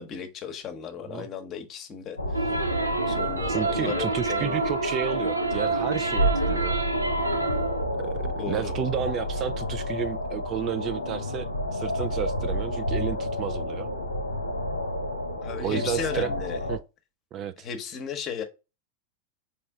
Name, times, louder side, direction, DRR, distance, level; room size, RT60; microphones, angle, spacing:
voice 1, 0.0-2.5 3.1-4.7 8.4-8.7 15.4-16.6 17.6-18.4, left 7 dB, 30° left, 0.9 m, -35 dB
sound 1, 2.2-16.8, equal, 80° left, 0.7 m, -30 dB
sound 2, 2.3-7.8, right 3 dB, 85° right, 0.5 m, -28 dB
voice 2, 3.5-6.7 8.0-13.9 15.6-16.3 16.7-16.8 17.3-17.7, right 9 dB, 30° right, 0.3 m, -32 dB
4.3 x 3.1 x 3.5 m
figure-of-eight pair, 90°, 0 cm